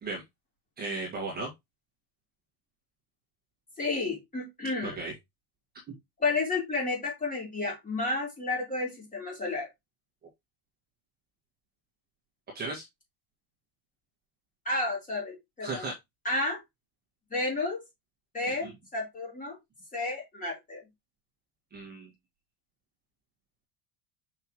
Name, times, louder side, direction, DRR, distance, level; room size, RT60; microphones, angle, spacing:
voice 1, 0.8-1.5 4.8-5.1 12.5-12.8 15.6-15.9 18.6-18.7 21.7-22.1, right 3 dB, 20° right, 1.6 m, -35 dB
voice 2, 3.8-5.0 6.2-9.7 14.7-15.8 16.2-16.6 17.3-17.8 18.3-19.6 19.9-20.8, left 3 dB, 20° left, 3.6 m, -31 dB
5.7 x 5.6 x 3.0 m
cardioid pair, 165°, 44 cm